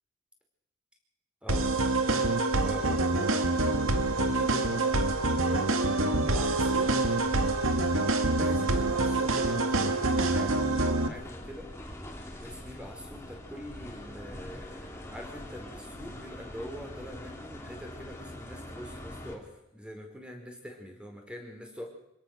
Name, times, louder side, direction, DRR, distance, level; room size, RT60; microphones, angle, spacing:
voice 1, 1.4-2.3 2.6-3.5 4.1-5.0 5.4-5.7 6.2-7.0 8.3-11.7 12.4-21.9, equal, 5° right, 2 dB, 4.9 m, -44 dB
sound 1, 1.5-11.1, right 2 dB, 75° right, 2.0 m, -26 dB
sound 2, 3.5-19.4, left 1 dB, 15° left, 3.5 m, -44 dB
26.5 x 17.5 x 6.7 m, 0.86 s
head